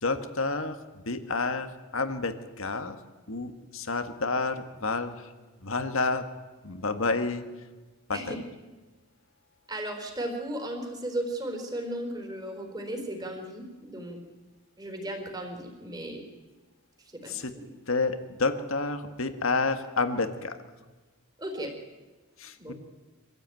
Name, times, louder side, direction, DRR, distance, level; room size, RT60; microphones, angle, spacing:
voice 1, 0.0-3.0 3.3-5.3 5.6-6.3 6.6-7.7 8.1-8.4 17.3-17.6 17.9-20.6 22.4-22.7, left 3 dB, 70° left, 9 dB, 1.7 m, -30 dB
voice 2, 9.7-14.2 14.8-16.2 17.2-17.3 21.4-21.7 22.6-22.7, right 1 dB, 20° right, 3 dB, 4.1 m, -35 dB
25.0 x 15.5 x 9.2 m, 1.3 s
head